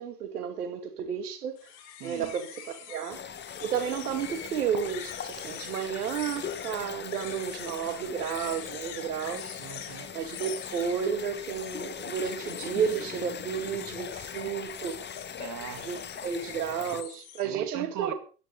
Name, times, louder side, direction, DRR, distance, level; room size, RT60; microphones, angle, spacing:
voice 1, 0.0-1.7 2.0-3.2 3.6-9.6 10.1-15.0 15.8-18.1, right 7 dB, 75° right, 2.5 m, -32 dB
sound 1, 1.6-17.4, left 10 dB, 55° left, 3.3 m, -45 dB
voice 2, 2.0-2.3 9.6-10.1 15.4-16.0 17.4-18.1, right 10 dB, 40° right, 2.3 m, -41 dB
sound 2, 3.1-17.0, left 7 dB, 20° left, 1.2 m, -40 dB
16.5 x 11.5 x 5.6 m
figure-of-eight pair, 70°, 46 cm